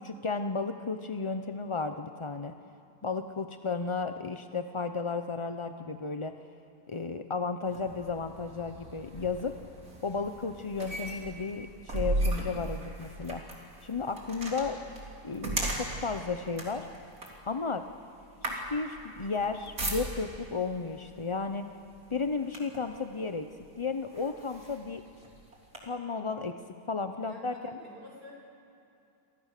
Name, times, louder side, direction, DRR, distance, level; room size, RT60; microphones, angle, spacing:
voice 1, 0.0-2.5 3.0-6.3 6.9-9.6 10.0-13.5 13.8-14.8 15.2-16.9 17.5-17.8 18.4-21.7 22.1-23.5 23.8-25.0 25.8-26.5 26.9-27.8, left 4 dB, 40° left, 8 dB, 0.4 m, -33 dB
sound 1, 7.6-20.5 21.3-21.5 21.9-22.9 23.6-23.7 24.1-25.8, right 1 dB, 65° right, 4.2 m, -37 dB
voice 2, 27.2-28.3, left 1 dB, 80° right, -3 dB, 7.3 m, -49 dB
29.0 x 27.0 x 6.7 m, 2.6 s
omnidirectional pair, 1.7 m